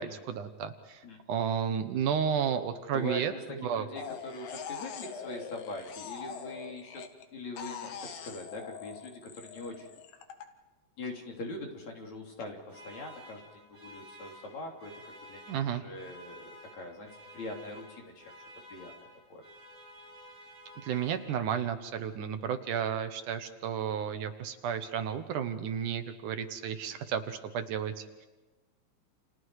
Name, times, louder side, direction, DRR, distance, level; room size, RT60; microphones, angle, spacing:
voice 1, 0.0-3.3 3.6-3.9 15.5-15.8 20.8-28.3, right 8 dB, 70° right, 9 dB, 2.5 m, -32 dB
voice 2, 2.9-10.0 11.0-18.3 18.7-18.9 19.3-19.4, left 1 dB, 55° left, 1 dB, 4.5 m, -42 dB
sound 1, 4.0-7.2 7.6-10.4, left 7 dB, 90° left, 3.3 m, -43 dB
sound 2, 12.7-21.7, equal, 25° right, 8.1 m, -52 dB
30.0 x 29.5 x 4.8 m, 1.2 s
omnidirectional pair, 4.0 m